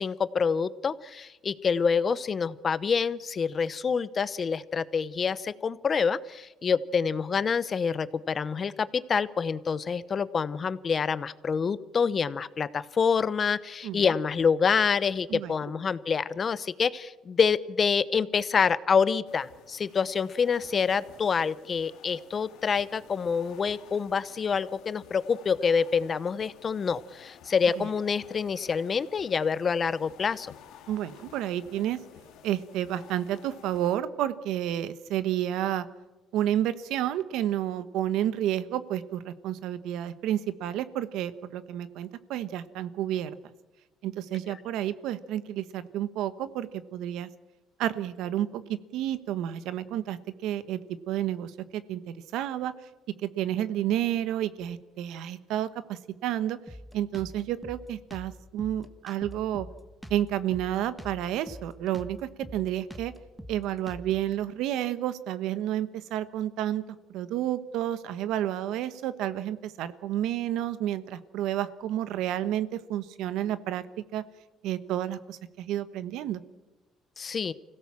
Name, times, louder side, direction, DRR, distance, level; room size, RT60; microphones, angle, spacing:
voice 1, 0.0-30.5 77.2-77.5, left 6 dB, 35° left, 16 dB, 0.8 m, -27 dB
sound 1, 19.3-34.0, left 9 dB, 80° left, 2.0 m, -53 dB
voice 2, 30.9-32.0 32.4-35.9 36.3-43.4 44.0-47.3 47.8-50.8 51.1-52.7 53.2-56.6 56.9-59.7 60.1-63.1 63.5-66.8 67.1-73.8 74.1-74.2 74.6-76.4, right 12 dB, 80° right, 13 dB, 1.1 m, -30 dB
Drum kit, 56.7-64.3, equal, 5° right, 1.5 m, -44 dB
25.5 x 17.0 x 7.4 m, 1.1 s
cardioid pair, 115°, 0 cm